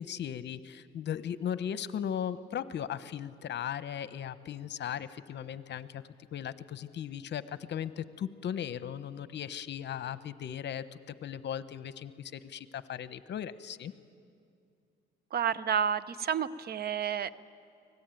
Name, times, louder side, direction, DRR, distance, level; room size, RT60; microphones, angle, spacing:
voice 1, 0.0-6.0 6.3-13.9, left 9 dB, 60° left, 14 dB, 0.9 m, -37 dB
voice 2, 15.3-17.3, right 8 dB, 50° right, 16 dB, 0.8 m, -30 dB
24.0 x 19.5 x 9.1 m, 2.4 s
cardioid pair, 90°, 20 cm